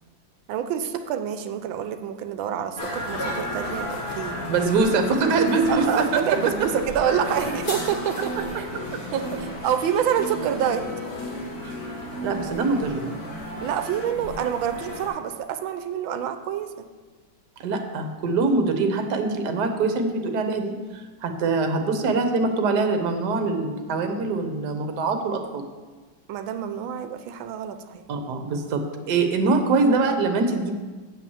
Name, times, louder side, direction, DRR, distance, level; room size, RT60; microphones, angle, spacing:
voice 1, 0.5-4.4 5.7-8.7 9.1-10.9 13.6-16.8 26.3-28.0, right 9 dB, 80° right, 9 dB, 1.4 m, -27 dB
sound 1, 2.8-15.1, left 1 dB, 50° left, 1.9 m, -33 dB
voice 2, 4.5-6.2 8.9-9.0 11.6-11.7 12.2-13.0 17.6-25.6 28.1-30.7, right 3 dB, 60° right, 6 dB, 1.5 m, -23 dB
8.2 x 5.8 x 7.1 m, 1.3 s
omnidirectional pair, 2.1 m